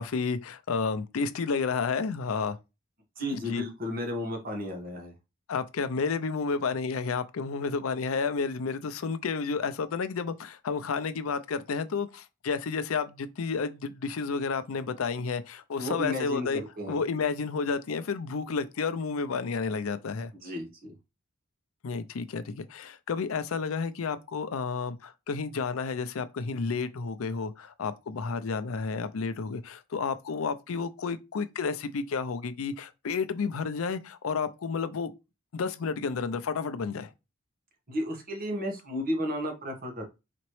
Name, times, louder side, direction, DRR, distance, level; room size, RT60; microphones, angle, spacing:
voice 1, 0.0-2.6 3.3-3.6 5.5-16.6 16.9-20.3 21.8-35.1 35.5-37.1, left 5 dB, 85° left, 0.5 m, -31 dB
voice 2, 3.2-5.1 15.8-17.0 20.4-20.9 37.9-40.1, equal, 45° right, 1.2 m, -33 dB
4.2 x 2.9 x 3.1 m
head